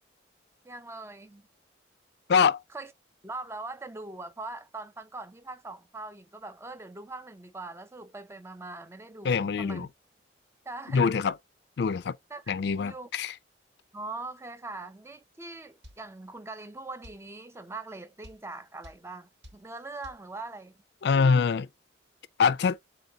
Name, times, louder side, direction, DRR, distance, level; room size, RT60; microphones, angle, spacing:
voice 1, 0.6-1.5 2.7-2.9 3.2-9.9 10.7-11.2 12.3-13.1 13.9-20.7, right 2 dB, 15° right, 0.4 m, -42 dB
voice 2, 2.3-2.6 9.2-9.9 10.9-11.3 11.8-12.2 12.5-13.3 21.0-21.7 22.4-22.8, left 5 dB, 60° left, 0.4 m, -24 dB
sound 1, 15.8-16.0 17.0-17.2 18.2-18.4 18.8-19.0 19.4-19.6 20.0-20.2, left 1 dB, 70° right, 1.0 m, -49 dB
3.9 x 2.8 x 3.8 m
head